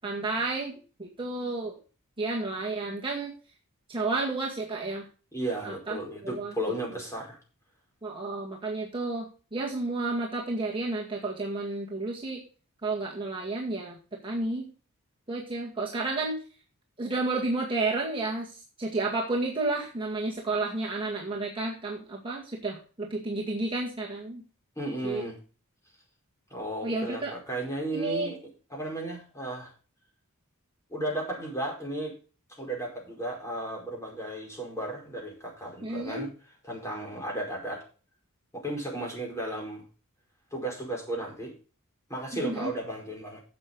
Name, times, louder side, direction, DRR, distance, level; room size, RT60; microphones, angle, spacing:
voice 1, 0.0-1.8 2.2-3.3 3.9-5.1 5.6-6.0 6.2-6.5 8.0-12.4 12.8-14.0 14.2-14.6 15.3-16.4 17.0-24.4 25.0-25.2 26.8-27.3 27.9-28.3 35.8-36.2 42.3-42.7, right 2 dB, 25° right, -3 dB, 2.0 m, -31 dB
voice 2, 5.3-7.4 24.8-25.3 26.5-28.4 28.7-29.7 30.9-32.1 32.6-36.3 36.7-37.8 38.5-39.8 40.5-41.5 42.1-43.4, right 1 dB, 15° left, -1 dB, 5.0 m, -34 dB
11.5 x 7.9 x 3.9 m, 0.36 s
head